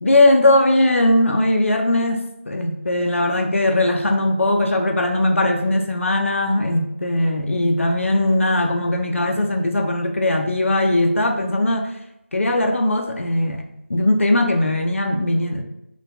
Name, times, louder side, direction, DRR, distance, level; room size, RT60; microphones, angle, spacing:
voice 1, 0.0-11.9 12.3-13.6 13.9-15.6, left 1 dB, 75° left, 4 dB, 0.4 m, -19 dB
2.6 x 2.2 x 2.2 m, 0.82 s
figure-of-eight pair, 170°, 7 cm